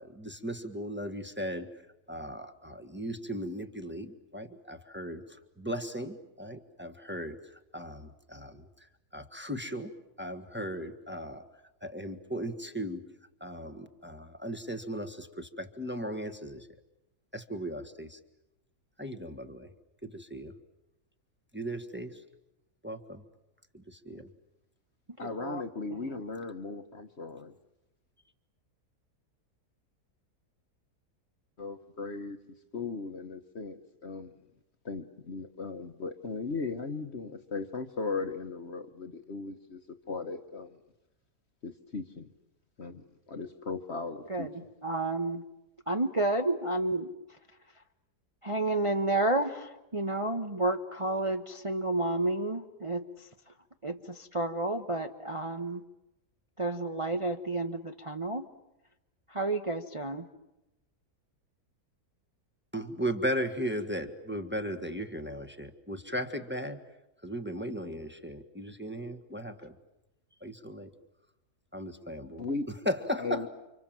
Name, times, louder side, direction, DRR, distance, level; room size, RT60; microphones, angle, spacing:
voice 1, 0.0-1.7 2.1-8.9 9.1-9.9 10.2-11.5 11.8-13.0 13.4-16.7 17.3-18.2 19.0-19.7 20.0-20.5 21.5-22.2 22.8-23.2 23.7-24.3 62.7-66.8 67.2-69.7 70.4-70.9 71.7-72.4 72.8-73.5, equal, 5° right, 6 dB, 1.5 m, -37 dB
voice 2, 25.2-27.5 31.6-32.4 32.7-34.4 34.8-39.8 40.1-40.8 41.6-42.3 42.8-44.5 72.4-72.7 73.2-73.5, left 4 dB, 45° left, 8 dB, 1.3 m, -37 dB
voice 3, 44.8-45.4 45.9-47.1 48.4-53.3 53.8-55.8 56.6-58.5 59.3-60.3, right 2 dB, 25° right, 6 dB, 1.0 m, -31 dB
30.0 x 26.5 x 7.5 m, 0.93 s
omnidirectional pair, 1.7 m